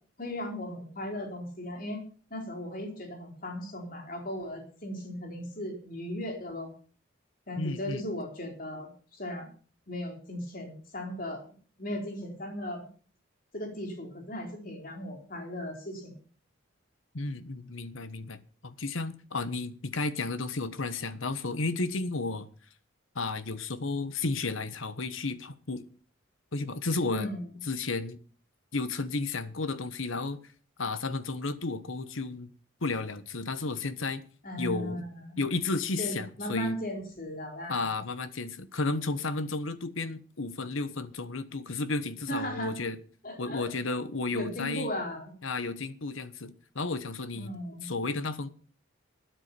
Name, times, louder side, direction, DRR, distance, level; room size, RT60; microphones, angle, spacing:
voice 1, 0.2-2.0 2.3-6.7 7.5-9.5 9.9-11.4 11.8-12.9 13.5-16.1 27.1-27.6 34.4-35.4 36.0-37.8 42.3-42.7 43.2-43.7 44.3-45.3 47.3-47.8, left 1 dB, 45° left, 4.2 m, -37 dB
voice 2, 7.6-8.0 17.1-22.5 23.1-25.8 26.5-27.3 27.7-28.2 28.7-30.4 30.8-32.5 32.8-34.2 34.6-35.1 35.4-36.8 37.7-43.0 43.4-44.9 45.4-47.5 47.8-48.5, left 3 dB, 80° left, 1.2 m, -33 dB
12.5 x 9.6 x 6.9 m
head